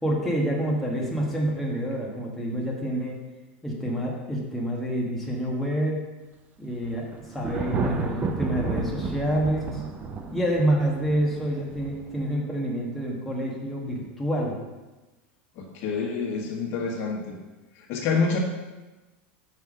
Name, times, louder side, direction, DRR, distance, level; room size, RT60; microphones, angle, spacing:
voice 1, 0.0-3.2 3.6-6.1 6.6-9.9 10.3-14.6, right 1 dB, 5° left, -4 dB, 1.5 m, -27 dB
Thunder, 6.8-12.2, right 4 dB, 30° right, 0.8 m, -31 dB
voice 2, 15.5-17.4 17.8-18.4, left 5 dB, 50° left, -1 dB, 1.5 m, -27 dB
5.8 x 5.7 x 5.0 m, 1.1 s
supercardioid pair, 125°, 6 cm